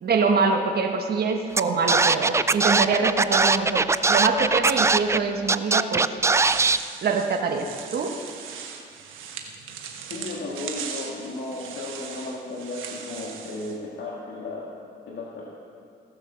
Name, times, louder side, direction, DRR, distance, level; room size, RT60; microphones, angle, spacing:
voice 1, 0.0-6.1 7.0-7.7 7.9-8.1, right 4 dB, 55° right, 3 dB, 1.2 m, -24 dB
Scratching (performance technique), 1.6-1.7 1.9-5.2 5.5-6.8, right 3 dB, 15° right, 0.3 m, -20 dB
sound 1, 6.4-13.8, right 7 dB, 85° right, 1.3 m, -38 dB
voice 2, 10.1-14.7 15.1-15.4, left 2 dB, 65° left, -5 dB, 2.1 m, -34 dB
16.5 x 7.0 x 6.8 m, 2.3 s
cardioid pair, 90°, 20 cm